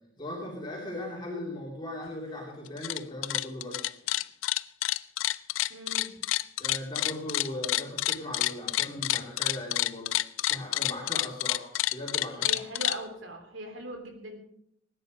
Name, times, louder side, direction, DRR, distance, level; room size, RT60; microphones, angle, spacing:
voice 1, 0.2-3.9 6.6-10.2 10.5-12.5, left 1 dB, 25° left, -3 dB, 3.1 m, -38 dB
sound 1, 2.7-3.0 3.2-13.0, left 15 dB, 90° left, 0.5 m, -28 dB
voice 2, 5.7-6.1 12.4-14.4, right 1 dB, 85° right, 5 dB, 3.3 m, -40 dB
20.0 x 10.0 x 5.3 m, 0.74 s
head